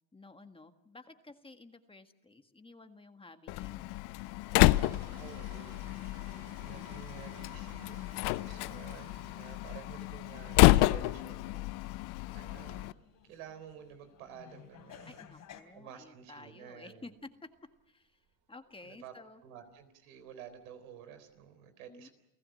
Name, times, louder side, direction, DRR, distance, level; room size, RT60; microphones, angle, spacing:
voice 1, 0.1-4.1 8.3-8.8 15.0-17.1 17.9-18.2 18.5-19.4 21.9-22.1, left 3 dB, 15° left, 7 dB, 1.7 m, -53 dB
Slam, 3.5-12.9, left 19 dB, 65° left, 0.7 m, -29 dB
sound 1, 4.1-10.0 10.3-10.6 10.9-11.0 11.4-11.5 11.9-12.1 12.4-12.5 13.1-13.2 13.4-13.6 14.1-14.4 14.7-14.8 15.2-15.4 15.7-15.8 16.2-16.3 16.9-17.2 17.6-17.9 18.3-18.4 18.8-18.9 19.6-19.8 20.2-20.7 21.1-21.2, right 6 dB, 50° right, 4.2 m, -57 dB
voice 2, 4.9-11.7 12.3-13.0 13.3-15.2 15.7-17.1 18.8-19.1 19.4-22.1, right 8 dB, 90° right, 9 dB, 3.9 m, -51 dB
sound 2, 5.7-15.6, left 9 dB, 50° left, 3.4 m, -59 dB
30.0 x 16.5 x 7.8 m, 0.92 s
supercardioid pair, 105°, 41 cm